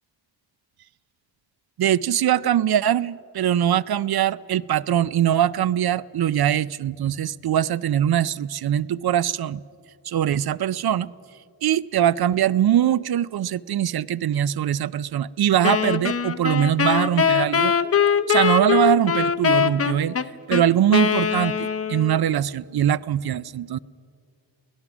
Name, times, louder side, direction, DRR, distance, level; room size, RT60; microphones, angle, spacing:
voice 1, 1.8-9.6 10.1-11.1 11.6-17.7 18.3-20.2 20.5-23.8, right 10 dB, 55° right, 20 dB, 0.5 m, -22 dB
Wind instrument woodwind instrument, 15.6-22.2, left 7 dB, 30° left, 0.7 m, -22 dB
28.0 x 17.0 x 6.1 m, 2.3 s
wide cardioid pair, 110°, 45 cm